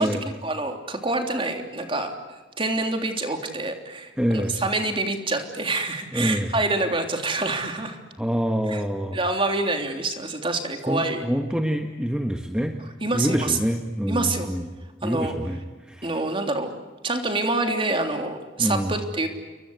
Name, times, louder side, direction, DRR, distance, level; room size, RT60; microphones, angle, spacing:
voice 1, 0.4-2.1 2.6-8.0 8.7-8.8 9.1-11.2 13.0-13.6 14.1-14.5 15.0-15.3 16.0-16.7 17.0-19.3, right 2 dB, 25° right, 5 dB, 3.4 m, -26 dB
voice 2, 4.2-4.6 6.1-6.5 8.2-9.2 10.9-12.8 13.1-14.7 15.0-15.6 15.9-16.1 18.6-18.9, equal, 5° right, 4 dB, 1.4 m, -26 dB
29.5 x 23.0 x 8.2 m, 1.3 s
head